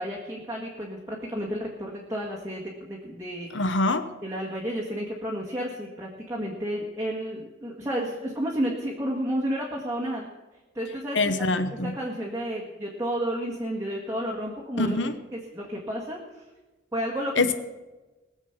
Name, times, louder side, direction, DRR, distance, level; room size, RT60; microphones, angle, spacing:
voice 1, 0.0-3.5 4.2-10.3 10.7-11.3 11.7-14.9 15.3-16.4 16.9-17.3, equal, 15° right, -4 dB, 1.7 m, -31 dB
voice 2, 3.5-4.0 11.1-11.9 14.8-15.1 17.4-17.6, left 2 dB, 80° left, 11 dB, 0.9 m, -24 dB
20.5 x 7.3 x 6.0 m, 1.2 s
head